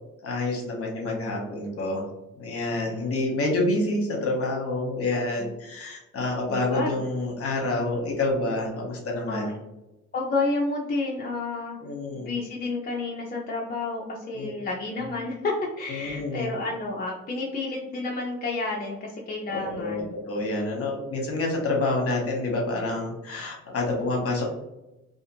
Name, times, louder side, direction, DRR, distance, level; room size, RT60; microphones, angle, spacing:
voice 1, 0.2-2.1 2.4-9.5 11.8-12.3 14.3-14.5 15.9-16.5 19.5-24.5, left 2 dB, 50° left, 0 dB, 1.0 m, -28 dB
voice 2, 2.7-3.1 5.4-5.5 6.5-7.0 9.3-9.5 10.1-11.8 12.2-20.2, left 3 dB, 30° left, -3 dB, 0.5 m, -30 dB
2.5 x 2.4 x 2.8 m, 0.96 s
cardioid pair, 90°, 30 cm